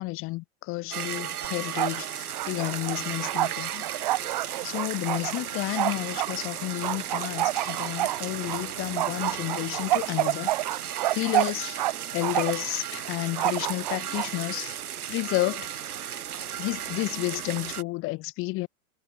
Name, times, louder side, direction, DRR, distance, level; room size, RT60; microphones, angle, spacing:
voice 1, 0.0-3.8 4.6-10.5 11.1-11.9 12.1-14.8 15.1-15.7 16.6-18.7, left 21 dB, 30° left, 2.8 m, -31 dB
sound 1, 0.9-17.8, right 9 dB, 90° right, 4.4 m, -35 dB
Bark, 1.4-2.0 2.3-6.3 6.8-8.6 9.0-11.9 12.2-12.7 13.4-14.3, right 16 dB, 30° right, 0.4 m, -28 dB
sound 2, 11.7-16.7, right 15 dB, 55° right, 7.7 m, -57 dB
hypercardioid pair, 155°, 43 cm